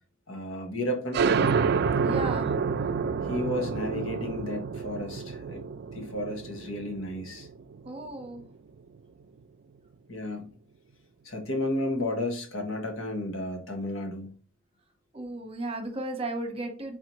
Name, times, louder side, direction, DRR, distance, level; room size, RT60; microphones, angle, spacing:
voice 1, 0.3-1.3 3.3-5.6 5.9-7.5 10.1-10.6 11.2-14.3, left 1 dB, 85° left, 3 dB, 1.3 m, -32 dB
sound 1, 1.1-8.4, right 5 dB, 50° right, 0.3 m, -28 dB
voice 2, 2.0-2.5 7.8-8.4 15.1-17.0, right 2 dB, 30° right, 5 dB, 1.0 m, -35 dB
4.1 x 4.1 x 3.0 m, 0.40 s
head